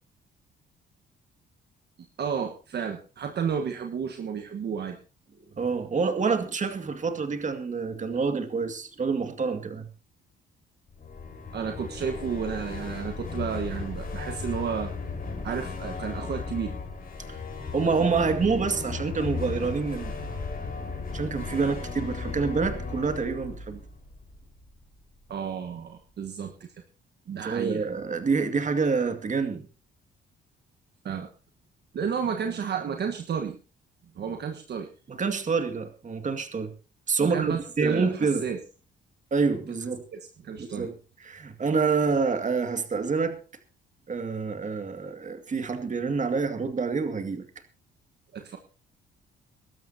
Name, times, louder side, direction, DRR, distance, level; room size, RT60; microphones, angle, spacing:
voice 1, 2.2-5.0 11.5-14.9 15.4-16.7 25.3-26.7 27.3-27.9 31.0-31.3 31.9-33.6 34.1-34.9 37.2-38.6 40.1-40.9 48.3-48.6, right 7 dB, 55° right, 4 dB, 1.4 m, -32 dB
voice 2, 5.6-9.9 17.3-17.4 17.7-20.1 21.1-23.8 27.4-29.7 35.1-36.7 37.1-38.4 39.3-40.0 40.6-40.9 41.2-43.4 44.1-47.5, right 4 dB, 40° right, 7 dB, 2.1 m, -27 dB
sound 1, 10.9-24.9, left 4 dB, 45° left, 4.6 m, -36 dB
23.0 x 12.5 x 2.8 m, 0.35 s
cardioid pair, 90°, 20 cm